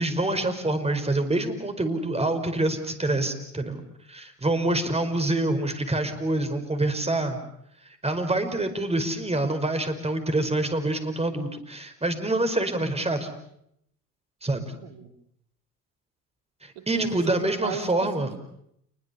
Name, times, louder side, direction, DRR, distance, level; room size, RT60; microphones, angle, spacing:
voice 1, 0.0-3.8 4.1-7.4 8.0-13.3 14.4-14.7 16.6-18.3, right 2 dB, 15° right, 7 dB, 5.1 m, -26 dB
voice 2, 14.8-15.1 16.7-18.1, right 7 dB, 70° right, 7 dB, 2.9 m, -35 dB
28.5 x 22.5 x 7.1 m, 0.71 s
hypercardioid pair, 65°, 46 cm